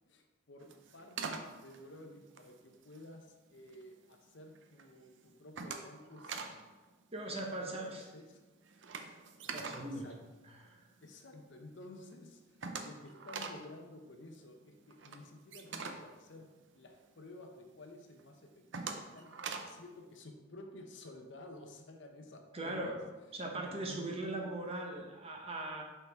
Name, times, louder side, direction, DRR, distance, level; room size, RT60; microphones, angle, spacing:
voice 1, 0.1-6.8 7.5-8.4 9.5-10.2 11.0-16.5 16.7-23.0 23.3-24.7, left 1 dB, 65° left, 4 dB, 0.7 m, -53 dB
sound 1, 0.6-3.1 3.6-4.1 4.5-4.9 5.2-6.6 6.9-7.0 7.3-11.1 11.4-11.5 11.8-11.9 12.1-17.2 17.6-17.7 18.2-19.9, right 5 dB, 65° right, 0.6 m, -44 dB
voice 2, 7.1-8.0 9.5-10.1 10.6-10.8 22.5-23.0 23.3-25.8, right 2 dB, 30° right, 1 dB, 0.9 m, -39 dB
5.9 x 5.6 x 3.5 m, 1.2 s
head